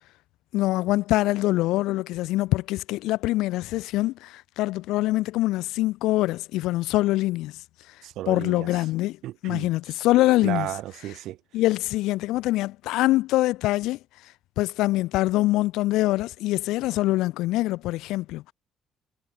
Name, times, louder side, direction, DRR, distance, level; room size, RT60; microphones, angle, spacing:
voice 1, 0.5-7.5 8.3-9.2 9.4-10.7 11.5-14.0 14.6-18.5, left 17 dB, 90° left, 6.7 m, -24 dB
voice 2, 8.0-8.7 9.2-9.7 10.4-11.4, right 14 dB, 70° right, 7.3 m, -33 dB
cardioid pair, 145°, 0 cm